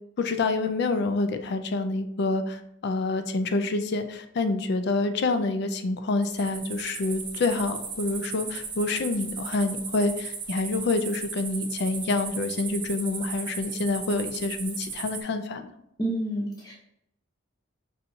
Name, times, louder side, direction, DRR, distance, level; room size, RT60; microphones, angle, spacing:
voice 1, 0.2-15.7, left 3 dB, 55° left, 8 dB, 0.4 m, -27 dB
sound 1, 6.2-15.2, right 5 dB, 25° right, 0.6 m, -36 dB
voice 2, 16.0-16.7, right 1 dB, 20° left, -6 dB, 0.7 m, -29 dB
5.5 x 2.7 x 2.7 m, 0.77 s
head